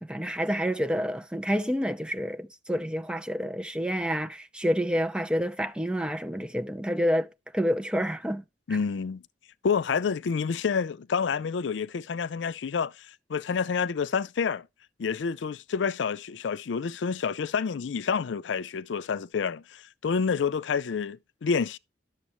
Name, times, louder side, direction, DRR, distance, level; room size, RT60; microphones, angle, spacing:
voice 1, 0.0-7.3 7.5-8.4, equal, 5° right, 0.6 m, -28 dB
voice 2, 8.7-9.2 9.6-14.6 15.0-21.8, left 6 dB, 85° left, 0.4 m, -28 dB
11.0 x 7.0 x 3.0 m
head